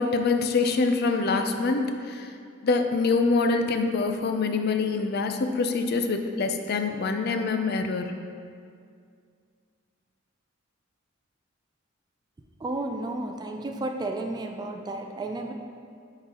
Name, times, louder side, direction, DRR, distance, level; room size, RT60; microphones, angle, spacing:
voice 1, 0.0-2.3 2.6-8.1, left 4 dB, 50° left, 6 dB, 0.4 m, -25 dB
voice 2, 12.6-15.5, right 2 dB, 20° right, 3 dB, 0.3 m, -32 dB
10.0 x 3.9 x 2.9 m, 2.2 s
head